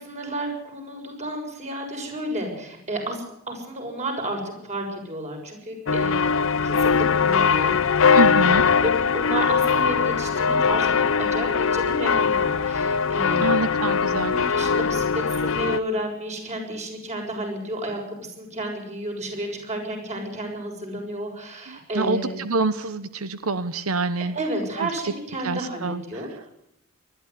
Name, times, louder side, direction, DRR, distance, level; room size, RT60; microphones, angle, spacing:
voice 1, 0.0-6.1 6.6-7.8 8.2-13.5 14.3-22.4 24.3-26.5, right 1 dB, 35° right, 2 dB, 6.8 m, -31 dB
sound 1, 5.9-15.8, left 5 dB, 70° left, 0.7 m, -21 dB
voice 2, 8.1-8.6 13.4-14.3 21.7-24.3 24.8-25.1 25.4-26.3, right 3 dB, 85° right, 13 dB, 1.1 m, -26 dB
20.5 x 14.0 x 9.6 m, 0.79 s
head